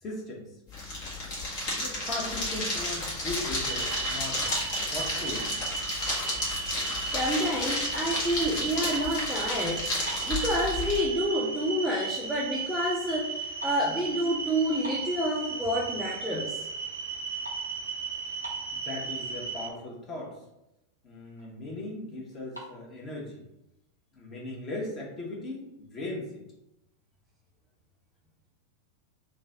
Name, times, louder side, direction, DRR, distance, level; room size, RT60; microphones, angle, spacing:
voice 1, 0.0-0.5 1.8-4.4 4.8-5.6 18.7-20.4 21.0-23.4 24.1-26.4, left 2 dB, 25° left, -3 dB, 1.2 m, -38 dB
sound 1, 0.7-11.0, left 2 dB, 45° left, 1.3 m, -32 dB
sound 2, 3.6-19.7, right 5 dB, 75° right, 0.6 m, -35 dB
sound 3, 4.5-5.7 6.2-6.5 6.8-8.2 8.7-9.3 9.6-9.7 10.0-10.9 11.3-11.4 12.0-12.1 12.3-12.7 12.9-15.7 16.2-16.6 16.9-18.9 19.6-19.7 19.9-20.1 20.5-20.6 20.9-21.5 22.3-22.7, equal, 90° left, 0.9 m, -45 dB
voice 2, 7.0-9.8 10.2-16.6, equal, ahead, -5 dB, 0.6 m, -29 dB
3.1 x 2.4 x 4.0 m, 0.87 s
figure-of-eight pair, 90°, 0 cm